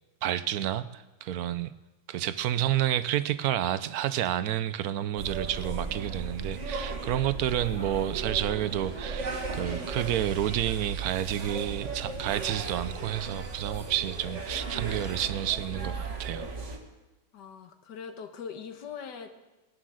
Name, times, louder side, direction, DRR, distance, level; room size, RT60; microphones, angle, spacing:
voice 1, 0.2-1.7 2.1-16.5, right 11 dB, 70° right, 14 dB, 0.9 m, -30 dB
sound 1, 5.2-16.8, right 4 dB, 40° right, 1.6 m, -36 dB
voice 2, 17.3-19.3, left 6 dB, 70° left, 7 dB, 1.7 m, -41 dB
19.0 x 7.7 x 6.3 m, 1.1 s
omnidirectional pair, 2.0 m